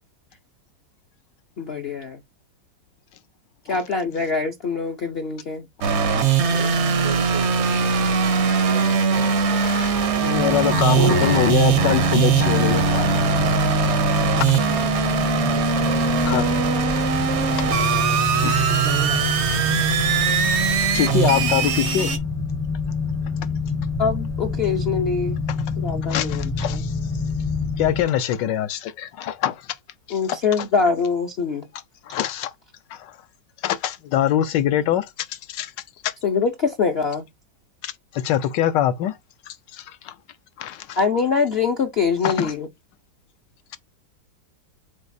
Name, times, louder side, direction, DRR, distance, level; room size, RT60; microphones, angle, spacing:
voice 1, 1.6-2.2 3.7-5.7 10.9-11.6 18.7-19.5 24.0-25.4 25.8-26.8 30.1-31.7 36.2-37.2 41.0-42.7, left 5 dB, 60° left, 0.6 m, -24 dB
sound 1, 5.8-22.2, right 6 dB, 60° right, 0.7 m, -21 dB
voice 2, 6.5-7.9 8.6-9.4 15.3-17.0, right 8 dB, 80° right, 1.4 m, -37 dB
voice 3, 9.6-13.1 16.2-16.5 18.4-18.8 20.1-20.2 20.9-22.1 25.5-25.6 26.1-26.9 27.8-29.6 30.1-30.6 32.1-32.5 32.9-33.1 33.6-35.7 36.0-36.1 37.8-39.2 39.5-40.1 40.6-41.0 42.2-42.5, left 11 dB, 80° left, 1.3 m, -24 dB
sound 2, 10.3-28.0, left 5 dB, 15° left, 0.5 m, -27 dB
5.1 x 3.9 x 2.6 m
omnidirectional pair, 2.0 m